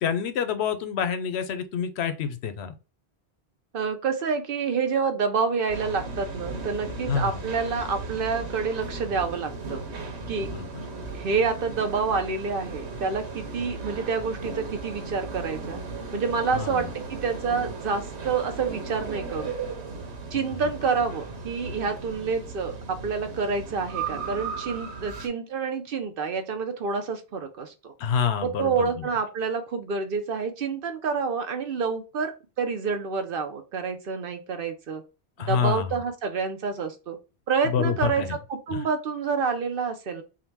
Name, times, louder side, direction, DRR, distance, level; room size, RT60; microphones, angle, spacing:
voice 1, 0.0-2.7 7.1-7.4 10.5-10.7 16.5-16.9 20.3-20.4 28.0-29.1 35.4-35.9 37.6-38.3 38.7-38.9, left 7 dB, 80° left, 10 dB, 0.9 m, -27 dB
voice 2, 3.7-10.5 11.1-15.8 16.1-19.5 20.3-27.9 28.4-35.0 35.5-37.2 37.5-40.2, right 5 dB, 60° right, 7 dB, 0.8 m, -28 dB
sound 1, 5.7-25.3, right 4 dB, 80° right, 1.2 m, -36 dB
3.8 x 2.2 x 4.5 m, 0.31 s
omnidirectional pair, 1.1 m